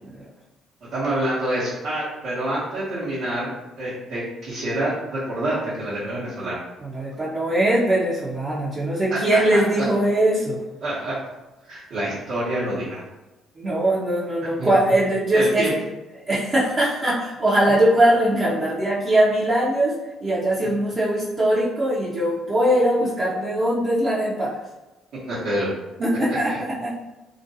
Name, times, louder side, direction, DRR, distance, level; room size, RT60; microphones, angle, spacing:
voice 1, 0.9-6.6 9.1-9.6 10.8-11.1 11.6-13.0 14.6-14.7 15.3-15.7 25.3-25.7 26.5-26.6, right 1 dB, 65° right, -11 dB, 1.0 m, -27 dB
voice 2, 6.8-10.6 13.6-15.7 16.3-19.9 20.2-24.6 26.0-26.9, right 1 dB, 40° right, -9 dB, 0.7 m, -21 dB
2.4 x 2.2 x 2.7 m, 1.0 s
hypercardioid pair, 55°, 0 cm